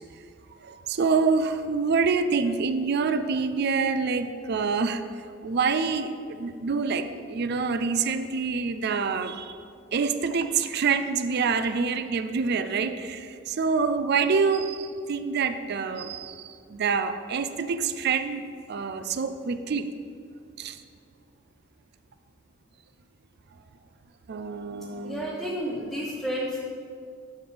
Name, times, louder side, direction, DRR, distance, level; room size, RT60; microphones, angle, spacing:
voice 1, 0.6-5.0 5.4-9.6 9.9-18.4 18.7-19.9 20.6-20.8 24.3-25.2, right 5 dB, 55° right, 10 dB, 0.5 m, -26 dB
voice 2, 25.0-26.6, equal, ahead, -8 dB, 1.0 m, -31 dB
11.0 x 6.9 x 3.3 m, 2.3 s
head